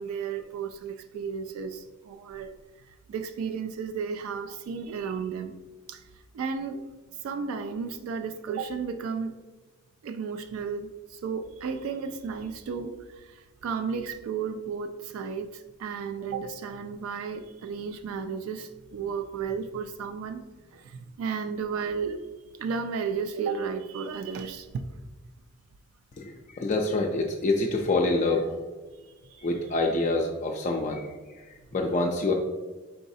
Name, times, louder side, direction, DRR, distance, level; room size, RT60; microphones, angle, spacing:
voice 1, 0.0-2.5 3.1-5.5 5.9-6.0 6.3-6.8 7.2-9.3 10.0-20.4 20.7-22.3 22.6-24.7 29.2-29.5, right 5 dB, 80° right, 9 dB, 0.3 m, -33 dB
voice 2, 26.2-28.6 29.4-31.1 31.7-32.3, left 2 dB, 35° left, 0 dB, 0.3 m, -26 dB
4.7 x 4.0 x 2.6 m, 1.3 s
head